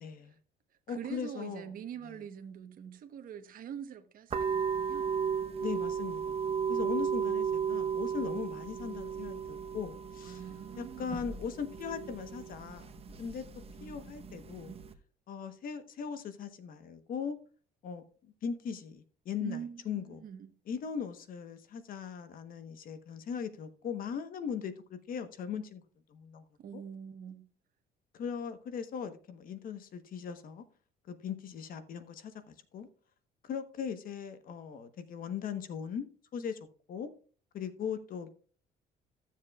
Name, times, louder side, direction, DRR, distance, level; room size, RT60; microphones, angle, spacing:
voice 1, 0.0-0.4 0.9-1.7 5.6-10.4 10.8-12.9 13.2-13.4 13.8-14.7 15.3-17.4 17.8-18.0 18.4-20.2 20.7-25.8 26.1-26.4 26.7-26.8 28.1-30.6 31.1-32.9 33.4-36.1 36.3-36.6 36.9-37.1 37.5-38.3, left 7 dB, 55° left, 1.1 m, -39 dB
voice 2, 0.9-5.3 10.2-11.2 19.4-20.5 26.6-27.5, right 8 dB, 55° right, 1.1 m, -44 dB
sound 1, 4.3-14.9, right 7 dB, 35° right, 1.0 m, -35 dB
15.0 x 7.4 x 2.4 m
cardioid pair, 110°, 17 cm